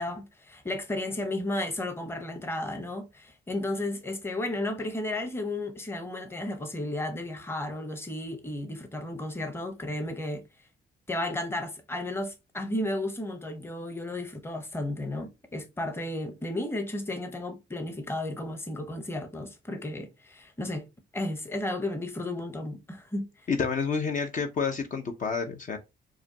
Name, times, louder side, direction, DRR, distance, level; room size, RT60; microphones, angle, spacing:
voice 1, 0.0-10.4 11.1-20.8 21.1-23.3, left 1 dB, 10° left, 0.8 m, -33 dB
voice 2, 23.5-25.8, left 5 dB, 45° left, 0.7 m, -29 dB
4.8 x 2.3 x 2.7 m
cardioid pair, 95°, 19 cm